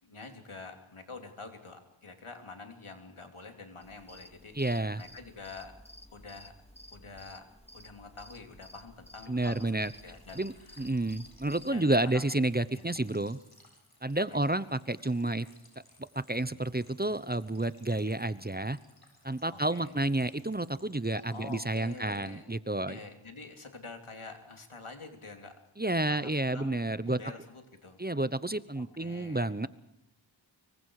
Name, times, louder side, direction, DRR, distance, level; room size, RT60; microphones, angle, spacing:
voice 1, 0.0-5.7 6.1-6.5 6.9-7.4 7.7-10.8 11.7-12.2 12.7-12.8 14.3-14.4 19.5-19.9 21.3-22.5 22.9-25.5 26.1-28.0 28.8-29.5, left 3 dB, 75° left, 5 dB, 3.5 m, -47 dB
sound 1, 3.8-11.7, left 1 dB, 10° left, 2.6 m, -53 dB
voice 2, 4.5-5.0 9.3-9.9 10.4-13.4 14.0-15.5 16.1-18.8 19.2-23.0 25.8-27.2 28.0-29.7, right 2 dB, 20° right, 15 dB, 0.9 m, -30 dB
sound 2, 9.9-22.3, left 2 dB, 45° left, 7.8 m, -62 dB
25.0 x 24.0 x 4.9 m, 0.85 s
wide cardioid pair, 40°, 49 cm